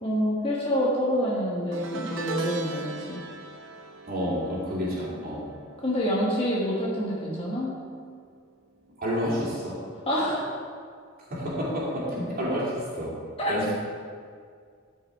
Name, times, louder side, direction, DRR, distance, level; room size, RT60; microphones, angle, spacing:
voice 1, 0.0-3.2 5.8-7.7 10.1-10.6 13.4-13.5, equal, 25° left, -5 dB, 1.2 m, -27 dB
sound 1, 1.7-7.1 7.4-7.8 9.0-9.1, right 3 dB, 65° right, 0.8 m, -39 dB
voice 2, 4.0-5.5 9.0-9.8 11.3-13.1 13.5-13.7, equal, 45° right, -7 dB, 2.6 m, -29 dB
12.5 x 5.4 x 4.5 m, 2.1 s
head